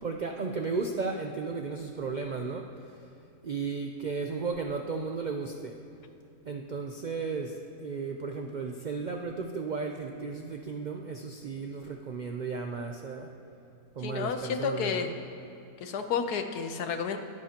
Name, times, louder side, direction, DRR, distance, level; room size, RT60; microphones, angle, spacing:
voice 1, 0.0-2.9 3.4-5.8 6.5-13.3 14.0-15.1, right 4 dB, 55° right, 3 dB, 0.5 m, -34 dB
voice 2, 14.0-15.1 15.8-17.2, left 6 dB, 85° left, 7 dB, 1.4 m, -31 dB
22.5 x 14.5 x 2.9 m, 2.6 s
omnidirectional pair, 1.6 m